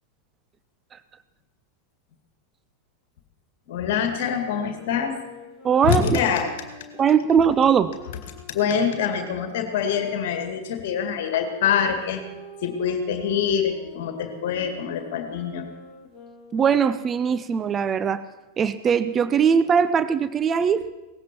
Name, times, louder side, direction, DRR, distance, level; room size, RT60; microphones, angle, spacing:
voice 1, 3.7-5.2 5.8-6.5 8.5-12.2 12.6-15.7, left 7 dB, 50° left, 6 dB, 2.2 m, -25 dB
sound 1, 4.7-10.5 11.3-16.9, left 3 dB, 20° left, 2.8 m, -45 dB
voice 2, 5.6-6.2 7.0-7.9 16.5-18.2 18.6-20.9, right 7 dB, 25° right, 13 dB, 0.6 m, -20 dB
18.5 x 15.5 x 4.5 m, 1.1 s
figure-of-eight pair, 90°, 0 cm